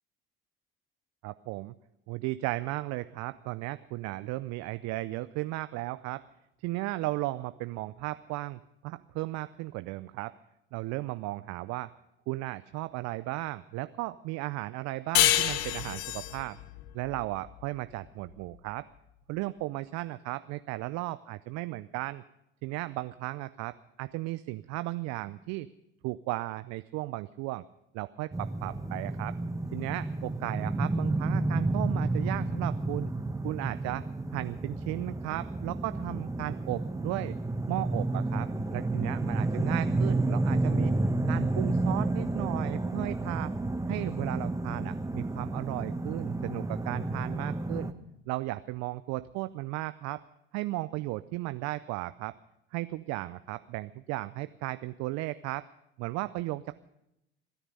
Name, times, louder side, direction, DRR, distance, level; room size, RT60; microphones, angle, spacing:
voice 1, 1.2-1.7 2.1-6.2 6.6-10.3 10.7-11.9 12.3-16.6 16.9-18.9 19.3-22.2 22.6-25.7 26.0-27.6 27.9-29.4 29.7-33.1 33.4-34.0 34.3-37.4 37.7-40.9 41.3-43.5 43.9-47.9 48.3-50.2 50.5-52.3 52.7-55.6 56.0-56.8, right 19 dB, 60° right, 14 dB, 0.6 m, -35 dB
sound 1, 15.1-18.3, left 13 dB, 70° left, 1.0 m, -28 dB
sound 2, 28.3-47.9, right 2 dB, 10° right, 1.1 m, -31 dB
26.5 x 10.0 x 5.4 m, 0.85 s
hypercardioid pair, 55°, 29 cm